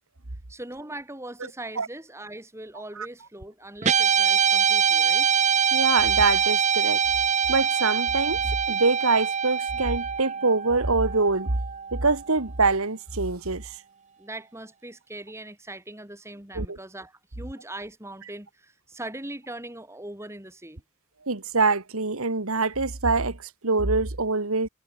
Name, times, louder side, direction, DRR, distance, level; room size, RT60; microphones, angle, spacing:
voice 1, 0.5-5.3 14.2-20.8, right 1 dB, 10° right, 2.9 m, -40 dB
Guitar, 3.8-12.3, right 7 dB, 30° right, 0.7 m, -24 dB
voice 2, 5.7-7.0 7.5-8.4 8.7-11.6 11.9-13.8 16.5-16.8 21.2-24.7, right 3 dB, 70° right, 1.8 m, -24 dB
head